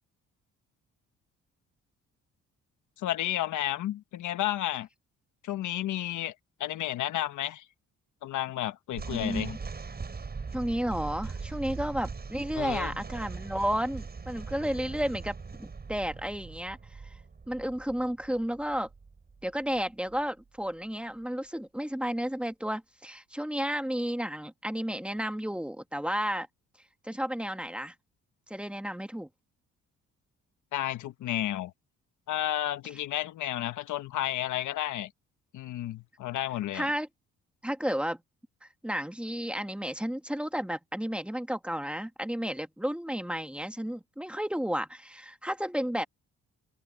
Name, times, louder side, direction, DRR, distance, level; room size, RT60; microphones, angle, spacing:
voice 1, 3.0-4.9 5.4-6.3 6.6-7.6 8.2-9.6 12.5-12.9 30.7-31.7 32.3-35.1 35.5-36.9, left 13 dB, 80° left, 1.2 m, -32 dB
sound 1, 8.9-20.2, right 4 dB, 30° right, 7.3 m, -41 dB
voice 2, 9.1-9.6 10.5-16.8 17.5-18.9 19.4-26.5 27.0-27.9 28.5-29.3 36.7-37.1 37.6-38.2 38.6-46.0, equal, 5° right, 1.7 m, -32 dB
open air
cardioid pair, 90°, 30 cm